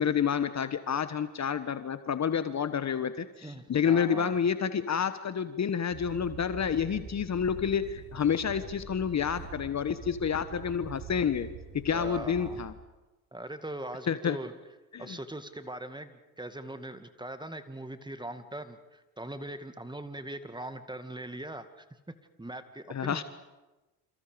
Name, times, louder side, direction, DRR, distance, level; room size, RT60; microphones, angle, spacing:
voice 1, 0.0-11.5 11.7-12.7 14.1-14.4 14.9-15.2 22.9-23.2, left 7 dB, 35° left, 12 dB, 1.4 m, -29 dB
voice 2, 3.4-4.3 11.9-12.6 13.3-14.5 15.0-23.2, right 1 dB, 10° right, 9 dB, 2.1 m, -41 dB
sound 1, 5.9-12.7, right 6 dB, 75° right, 7.4 m, -45 dB
28.5 x 28.0 x 5.2 m, 1.1 s
hypercardioid pair, 60°, 44 cm